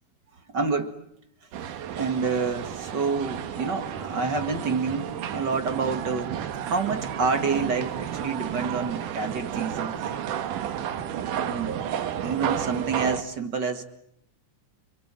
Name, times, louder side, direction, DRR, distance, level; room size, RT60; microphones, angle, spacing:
voice 1, 0.5-1.0 2.0-6.4 6.6-10.1 11.4-11.8 12.2-13.9, right 4 dB, 40° right, 2.2 m, -28 dB
sound 1, 1.5-13.2, right 9 dB, 80° right, 2.9 m, -32 dB
29.0 x 27.0 x 7.6 m
omnidirectional pair, 3.7 m